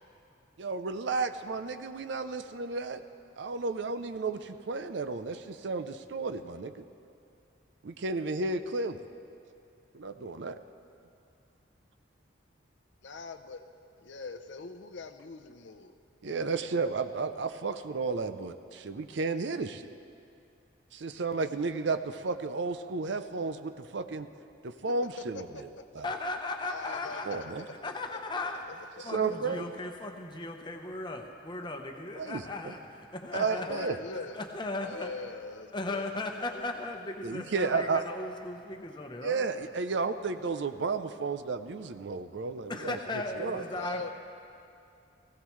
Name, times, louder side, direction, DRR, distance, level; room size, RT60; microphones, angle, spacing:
voice 1, 0.6-3.0 3.4-6.8 7.8-9.0 9.9-10.6 16.2-19.9 20.9-24.3 24.6-25.5 25.9-26.1 27.3-27.7 29.0-29.7 32.2-32.7 33.3-34.0 37.2-38.0 39.2-43.0 43.4-43.6, right 4 dB, 70° right, 10 dB, 0.5 m, -32 dB
voice 2, 13.0-13.6 14.0-15.9 24.8-24.9 25.3-25.6 26.6-29.6 33.5-34.4 34.8-36.7 43.7-44.1, left 4 dB, 70° left, 8 dB, 0.7 m, -43 dB
voice 3, 26.0-27.5 27.8-35.1 35.7-39.4 42.7-44.1, left 2 dB, 25° left, 3 dB, 0.9 m, -37 dB
19.5 x 15.5 x 3.2 m, 2.5 s
head